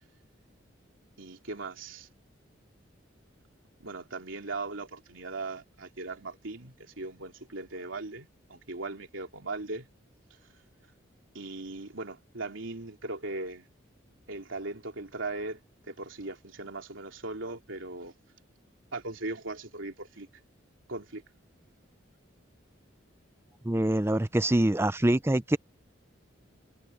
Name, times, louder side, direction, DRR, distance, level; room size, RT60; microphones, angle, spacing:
voice 1, 1.2-2.1 3.8-9.9 11.3-13.7 14.3-15.6 15.9-18.1 18.9-20.3 20.9-21.2, right 2 dB, 85° right, 3.0 m, -38 dB
voice 2, 23.6-25.6, right 1 dB, 10° right, 0.5 m, -25 dB
head